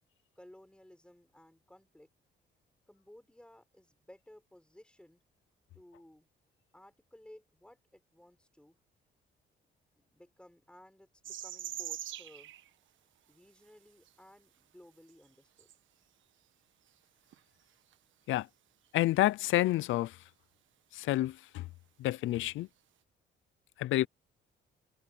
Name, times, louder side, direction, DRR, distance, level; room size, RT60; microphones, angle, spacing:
voice 1, 0.3-2.1 2.9-5.2 5.7-6.3 6.7-8.8 10.0-12.5 13.3-15.7, left 1 dB, 5° left, 4.8 m, -57 dB
sound 1, 11.2-12.7 14.1-14.2 15.1-15.3 15.6-15.7 17.3-17.4 17.9-18.0 19.5-19.7 22.1-22.2, right 12 dB, 75° right, 1.4 m, -42 dB
voice 2, 18.9-20.2 20.9-21.7 22.0-22.7 23.8-24.1, left 16 dB, 80° left, 0.5 m, -29 dB
cardioid pair, 90°, 20 cm